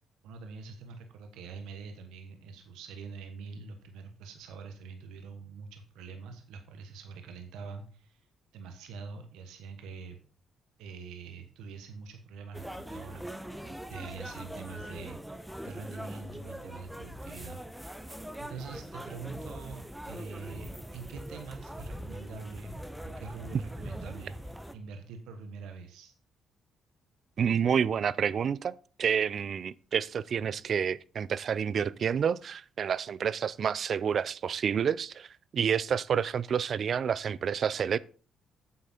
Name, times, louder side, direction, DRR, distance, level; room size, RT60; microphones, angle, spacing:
voice 1, 0.2-8.3 8.5-10.2 10.8-13.3 13.6-17.6 18.4-26.1, right 5 dB, 85° right, 1.2 m, -44 dB
sound 1, 12.5-24.8, equal, 5° right, 1.0 m, -42 dB
voice 2, 27.4-35.3 35.5-38.0, right 7 dB, 55° right, 0.4 m, -29 dB
8.6 x 7.5 x 4.3 m
supercardioid pair, 70°, 0 cm